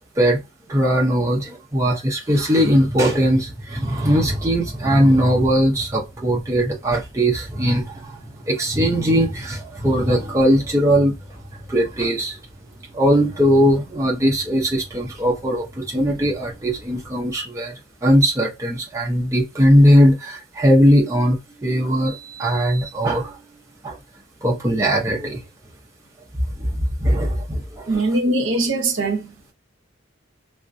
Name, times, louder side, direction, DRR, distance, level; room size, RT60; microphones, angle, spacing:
voice 1, 0.7-8.1 8.5-11.1 11.7-12.4 12.9-17.7 18.0-23.3 23.8-23.9 24.4-25.4 26.6-28.0, equal, 15° right, 0.5 m, -19 dB
voice 2, 27.9-29.5, right 2 dB, 75° right, 0.7 m, -22 dB
3.4 x 2.1 x 2.5 m
head